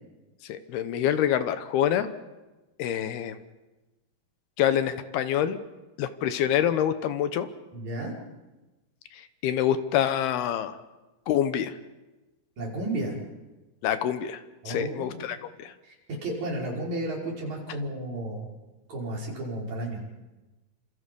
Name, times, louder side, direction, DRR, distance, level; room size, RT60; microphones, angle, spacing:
voice 1, 0.5-2.1 2.8-3.4 4.6-5.6 6.0-7.5 9.1-10.8 11.3-11.7 13.8-14.4 14.7-15.7, left 10 dB, 75° left, 10 dB, 2.9 m, -26 dB
voice 2, 7.7-8.1 12.6-13.1 14.6-15.2 15.8-16.0 16.2-18.5 18.9-20.0, right 1 dB, 45° right, -3 dB, 6.4 m, -32 dB
29.0 x 27.0 x 5.4 m, 1.1 s
omnidirectional pair, 4.6 m